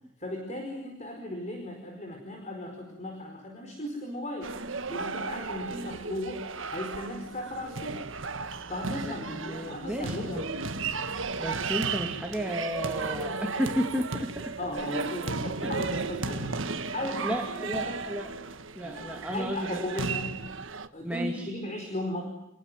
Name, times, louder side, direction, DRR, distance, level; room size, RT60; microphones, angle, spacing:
voice 1, 0.2-4.5 4.9-8.1 8.7-10.4 14.6-18.0 18.8-20.4 20.9-22.2, left 1 dB, 35° left, 3 dB, 4.9 m, -36 dB
sound 1, 4.4-20.9, right 4 dB, 65° right, 1.6 m, -34 dB
voice 2, 9.0-10.4 11.4-14.5 14.9-15.0 15.6-15.8 17.2-18.3 18.7-19.9 21.0-21.5, equal, 5° right, 2 dB, 2.5 m, -33 dB
29.5 x 21.0 x 9.2 m, 0.89 s
head